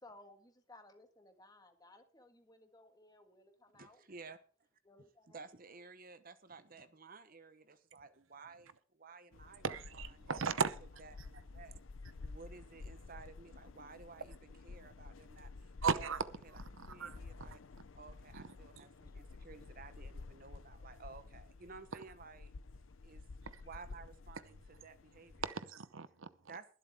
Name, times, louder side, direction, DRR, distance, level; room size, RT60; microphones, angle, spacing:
voice 1, 0.0-4.0 4.8-5.4 19.1-19.2, left 2 dB, 15° left, 1.6 m, -60 dB
voice 2, 3.7-4.4 5.3-9.6 9.9-10.3 11.0-11.8 12.2-16.6 16.9-17.6 17.9-22.5 23.0-23.2 23.6-25.4 26.5-26.7, right 4 dB, 40° right, 1.0 m, -54 dB
sound 1, 9.3-25.5, left 3 dB, 65° left, 0.6 m, -52 dB
voice 3, 9.6-10.8 15.8-16.2 16.8-17.2 18.3-18.4 18.8-18.9 23.5-23.6 25.4-26.3, right 5 dB, 65° right, 0.8 m, -36 dB
21.5 x 7.8 x 3.6 m
head